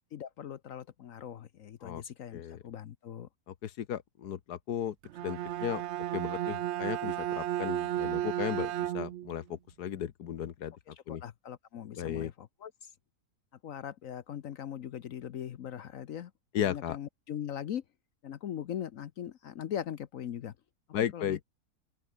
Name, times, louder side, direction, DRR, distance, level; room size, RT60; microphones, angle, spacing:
voice 1, 0.1-3.3 10.9-12.9 13.6-16.3 16.6-17.8 18.2-20.5 21.1-21.4, left 10 dB, 60° left, 1.1 m, -40 dB
voice 2, 3.6-4.9 5.2-5.8 6.1-11.2 11.9-12.3 16.5-17.0 20.9-21.4, left 10 dB, 80° left, 1.6 m, -35 dB
Bowed string instrument, 5.0-9.3, right 13 dB, 75° right, 0.6 m, -33 dB
open air
omnidirectional pair, 1.7 m